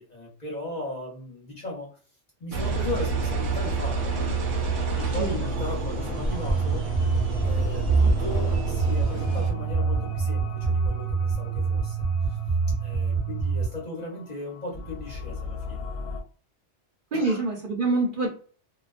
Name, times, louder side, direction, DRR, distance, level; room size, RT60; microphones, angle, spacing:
voice 1, 0.0-2.0 2.4-12.0 12.2-12.4 12.8-15.8 17.1-17.4, left 2 dB, 40° left, -3 dB, 0.7 m, -37 dB
Engine, 2.5-9.5, right 3 dB, 90° right, 0.9 m, -29 dB
sound 1, 4.0-16.2, left 4 dB, 65° left, 0.8 m, -39 dB
sound 2, 6.2-13.6, right 4 dB, 25° right, 0.9 m, -25 dB
voice 2, 17.1-18.3, right 3 dB, 50° right, -2 dB, 0.8 m, -25 dB
2.3 x 2.2 x 2.4 m, 0.39 s
omnidirectional pair, 1.2 m